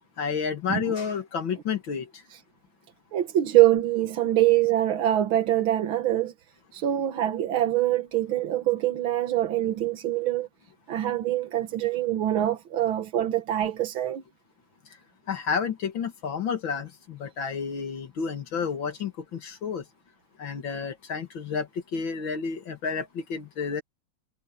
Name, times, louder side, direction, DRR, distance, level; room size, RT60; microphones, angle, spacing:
voice 1, 0.2-2.2 15.3-19.8 20.4-23.8, left 6 dB, 70° left, 2.5 m, -30 dB
voice 2, 3.1-6.3 6.7-10.5 10.9-14.2, right 13 dB, 75° right, 1.9 m, -24 dB
omnidirectional pair, 2.3 m